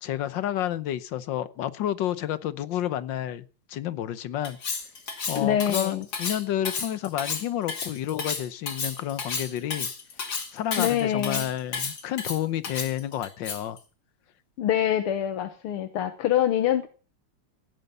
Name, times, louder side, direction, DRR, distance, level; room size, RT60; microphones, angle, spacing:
voice 1, 0.0-3.4 3.7-4.6 5.3-9.9 10.5-13.8, left 11 dB, 65° left, 15 dB, 1.5 m, -30 dB
Cutlery silverware, 4.4-13.8, left 5 dB, 50° left, 2.5 m, -32 dB
voice 2, 5.4-6.0 10.8-11.5 14.6-16.9, left 10 dB, 85° left, 8 dB, 2.0 m, -25 dB
16.5 x 9.2 x 6.8 m, 0.37 s
omnidirectional pair, 2.4 m